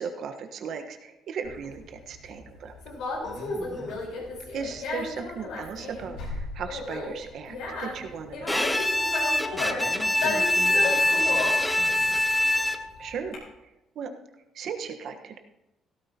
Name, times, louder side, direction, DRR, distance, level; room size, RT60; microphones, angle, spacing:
voice 1, 0.0-2.7 4.5-8.8 13.0-14.1 14.5-15.4, right 6 dB, 65° right, 5 dB, 1.3 m, -37 dB
Conversation, 1.4-13.3, left 3 dB, 85° left, 4.5 m, -34 dB
voice 2, 3.2-4.1 9.4-12.5, left 2 dB, 40° left, -2 dB, 2.0 m, -42 dB
Bowed string instrument, 8.5-13.1, left 1 dB, 10° left, 0.8 m, -24 dB
16.0 x 13.5 x 3.0 m, 0.93 s
cardioid pair, 105°, 0 cm